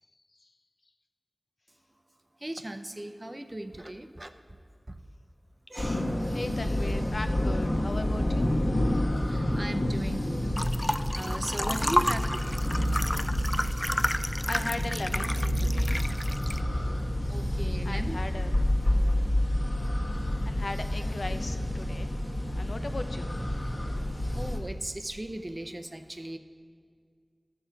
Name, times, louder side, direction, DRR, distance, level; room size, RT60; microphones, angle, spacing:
voice 1, 2.4-4.3 4.9-5.0 5.7-6.1 9.3-10.5 11.1-12.6 17.3-18.2 24.3-26.4, right 1 dB, 30° right, 7 dB, 0.6 m, -37 dB
sound 1, 5.8-24.6, left 1 dB, 50° left, 1.4 m, -29 dB
voice 2, 6.3-8.6 14.5-16.0 17.9-18.5 20.4-22.1 22.6-23.3, left 2 dB, 70° left, 7 dB, 0.6 m, -38 dB
sound 2, 10.6-16.6, equal, 10° left, 0.3 m, -31 dB
13.0 x 6.8 x 4.5 m, 2.1 s
wide cardioid pair, 40°, 0 cm